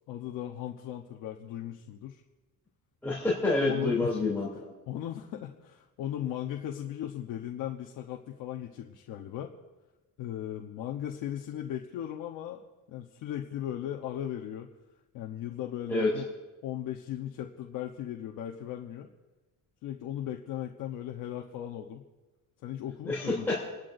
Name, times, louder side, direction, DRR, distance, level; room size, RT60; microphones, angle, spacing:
voice 1, 0.1-2.2 3.6-4.1 4.9-9.5 10.2-12.6 12.9-14.7 15.1-16.3 16.6-19.1 19.8-22.1 22.6-23.3, left 11 dB, 75° left, 2 dB, 1.0 m, -37 dB
voice 2, 3.0-4.7 15.9-16.1 23.0-23.7, left 2 dB, 5° left, -7 dB, 3.0 m, -28 dB
29.0 x 11.5 x 2.6 m, 1.1 s
cardioid pair, 165°, 33 cm